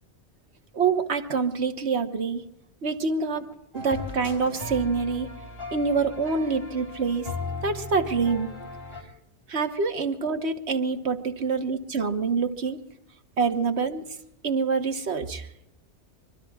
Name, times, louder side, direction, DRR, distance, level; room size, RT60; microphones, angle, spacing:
voice 1, 0.7-2.4 2.8-3.5 3.7-5.3 5.7-7.3 7.6-8.5 9.5-12.8 13.4-14.0 14.4-15.5, right 5 dB, 65° right, 8 dB, 1.5 m, -26 dB
sound 1, 3.7-9.0, left 2 dB, 55° left, 3.8 m, -37 dB
25.0 x 24.0 x 2.4 m, 0.86 s
omnidirectional pair, 1.2 m